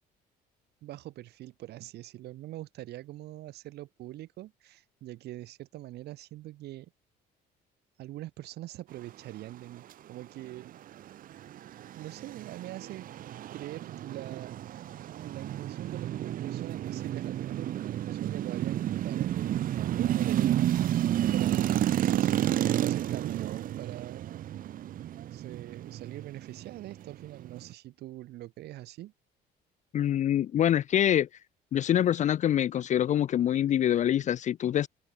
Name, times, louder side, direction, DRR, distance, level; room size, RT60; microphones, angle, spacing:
voice 1, 0.8-6.9 8.0-10.8 12.0-13.1 13.5-14.9 15.2-22.6 22.9-24.2 25.3-29.1, right 15 dB, 75° right, 2.9 m, -43 dB
sound 1, 11.0-27.7, right 12 dB, 55° right, 0.8 m, -31 dB
voice 2, 29.9-31.3 31.7-34.9, left 10 dB, 45° left, 0.5 m, -25 dB
cardioid pair, 110°, 17 cm